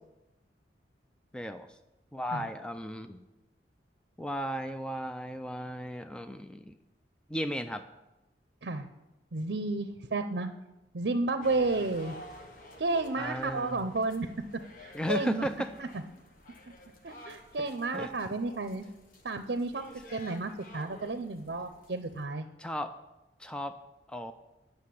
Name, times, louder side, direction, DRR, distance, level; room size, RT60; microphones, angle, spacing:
voice 1, 1.3-1.7 2.1-3.2 4.2-6.7 7.3-7.9 13.2-13.8 14.9-15.7 17.6-17.7 17.9-18.1 22.6-22.9 23.4-23.8 24.1-24.3, equal, 5° left, 8 dB, 0.4 m, -35 dB
voice 2, 9.3-10.5 10.9-12.2 12.8-14.3 14.8-15.5 15.8-15.9 17.0-18.8 19.2-22.5, right 3 dB, 65° right, 8 dB, 0.6 m, -32 dB
sound 1, 11.4-22.2, left 1 dB, 50° left, 1.2 m, -51 dB
9.5 x 6.5 x 8.3 m, 0.98 s
head